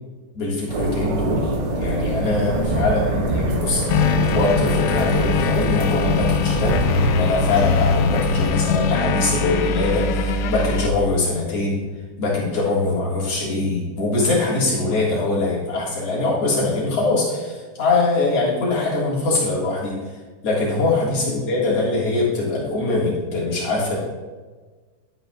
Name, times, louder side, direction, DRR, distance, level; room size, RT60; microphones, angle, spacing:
voice 1, 0.3-11.8 12.2-20.0 20.4-24.0, left 3 dB, 55° left, -5 dB, 1.7 m, -22 dB
sound 1, 0.7-8.5, right 2 dB, 80° right, 3.8 m, -25 dB
sound 2, 3.9-10.9, left 5 dB, 85° left, 3.0 m, -22 dB
11.5 x 11.0 x 2.3 m, 1.4 s
omnidirectional pair, 5.4 m